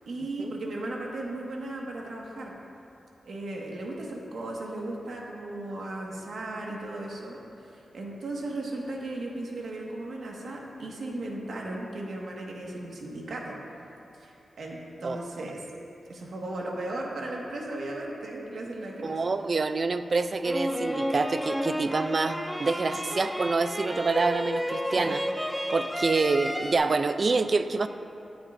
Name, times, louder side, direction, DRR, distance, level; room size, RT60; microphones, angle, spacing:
voice 1, 0.1-2.5 3.2-13.6 14.1-15.6 16.1-19.2 22.8-23.0 24.8-25.2, right 2 dB, 75° right, -2 dB, 1.7 m, -36 dB
voice 2, 19.0-25.2 25.7-27.9, right 3 dB, 45° right, 10 dB, 0.5 m, -27 dB
sound 1, 20.4-26.7, equal, ahead, 0.6 m, -31 dB
23.0 x 7.9 x 2.7 m, 2.9 s
wide cardioid pair, 95°, 0 cm